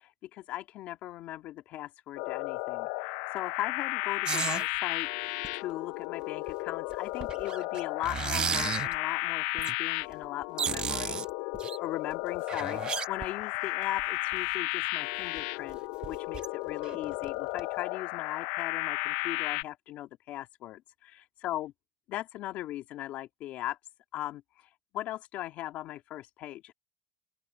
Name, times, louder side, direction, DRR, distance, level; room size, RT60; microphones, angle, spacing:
voice 1, 0.0-11.3 11.8-21.7 22.1-23.8 24.1-24.7 24.9-26.7, left 14 dB, 50° left, 2.0 m, -39 dB
sound 1, 2.2-19.6, left 24 dB, 70° left, 0.4 m, -34 dB
sound 2, 4.3-4.7 5.4-5.5 6.5-6.6 6.9-9.0 9.6-9.8 10.1-10.2 10.4-11.8 12.3-13.6 14.0-14.1 14.3-14.4 15.4-15.5 15.7-15.8 16.0-16.5 16.8-17.3 17.6-17.7, right 7 dB, 30° right, 1.0 m, -33 dB
open air
supercardioid pair, 135°, 3 cm